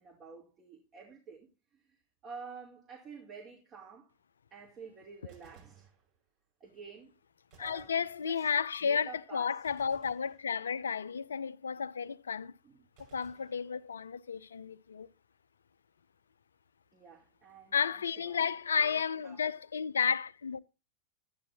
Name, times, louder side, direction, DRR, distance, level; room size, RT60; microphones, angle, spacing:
voice 1, 0.0-1.5 1.7-2.0 2.2-4.1 4.5-5.9 6.6-7.1 7.6-8.5 8.8-9.5 12.6-12.8 16.9-19.5, right 5 dB, 35° right, 3.0 m, -50 dB
Gunshot gunfire, 5.3-6.5 7.5-8.7 9.6-11.1 13.0-14.3, right 5 dB, 55° right, 5.5 m, -62 dB
voice 2, 7.6-12.5 13.1-15.1 17.7-20.6, left 6 dB, 80° left, 0.5 m, -32 dB
12.0 x 10.5 x 2.8 m
figure-of-eight pair, 95°, 0 cm